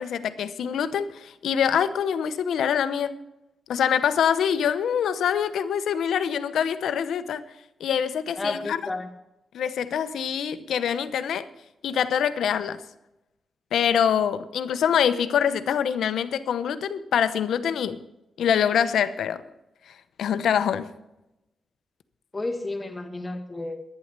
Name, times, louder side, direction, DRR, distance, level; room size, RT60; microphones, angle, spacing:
voice 1, 0.0-3.1 3.7-7.4 7.8-8.8 9.5-11.4 11.8-12.8 13.7-18.0 18.4-19.4 20.2-20.9, left 8 dB, 85° left, 0.8 m, -24 dB
voice 2, 8.3-9.1 22.3-23.8, left 2 dB, 20° left, 1.9 m, -31 dB
11.5 x 10.0 x 6.7 m
cardioid pair, 95°, 0 cm